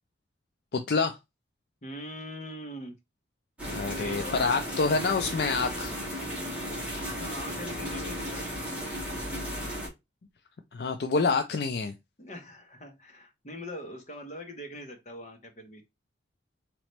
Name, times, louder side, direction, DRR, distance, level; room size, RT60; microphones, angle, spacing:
voice 1, 0.7-1.2 3.7-5.9 6.5-6.6 10.7-11.9, left 4 dB, 60° left, 0.4 m, -27 dB
voice 2, 1.8-3.0 3.9-4.6 7.2-8.6 12.2-15.8, left 1 dB, 40° left, 1.0 m, -42 dB
sound 1, 3.6-9.9, equal, 5° right, 1.7 m, -35 dB
4.0 x 3.0 x 3.1 m
head